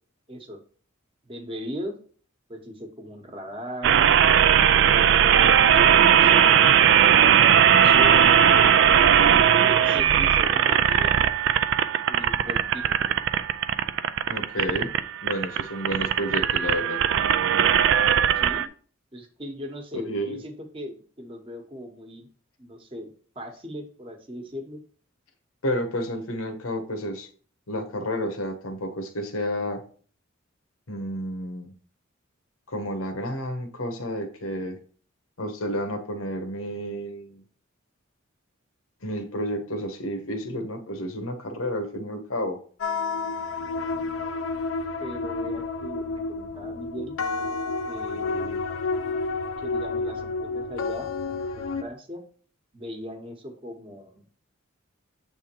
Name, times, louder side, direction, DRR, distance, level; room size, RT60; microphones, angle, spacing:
voice 1, 0.3-0.6 1.2-2.0 2.5-4.1 4.9-7.1 7.5-8.7 9.3-11.3 12.1-13.2 18.3-18.7 19.1-22.3 22.6-24.8 45.0-47.1 47.9-48.6 49.6-51.1 51.6-52.2 52.7-54.2, equal, 25° right, 4 dB, 1.0 m, -38 dB
sound 1, 3.8-18.7, right 8 dB, 60° right, 0.4 m, -19 dB
voice 2, 14.3-14.9 15.2-17.0 19.9-20.4 25.6-27.3 27.7-29.8 30.9-31.7 32.7-34.8 35.4-37.4 39.0-42.6, equal, 85° left, 5 dB, 1.2 m, -31 dB
sound 2, 42.8-51.8, left 3 dB, 70° left, 0.5 m, -30 dB
7.6 x 3.6 x 4.4 m, 0.43 s
head